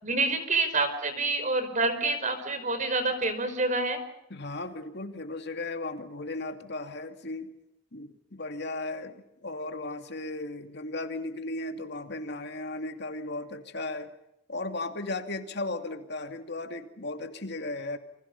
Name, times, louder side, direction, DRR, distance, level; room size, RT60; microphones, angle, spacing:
voice 1, 0.0-4.0, right 3 dB, 40° right, 10 dB, 5.1 m, -27 dB
voice 2, 4.3-7.5 7.9-14.1 14.5-18.0, left 2 dB, 60° left, 6 dB, 2.6 m, -36 dB
29.0 x 25.5 x 5.5 m, 0.81 s
head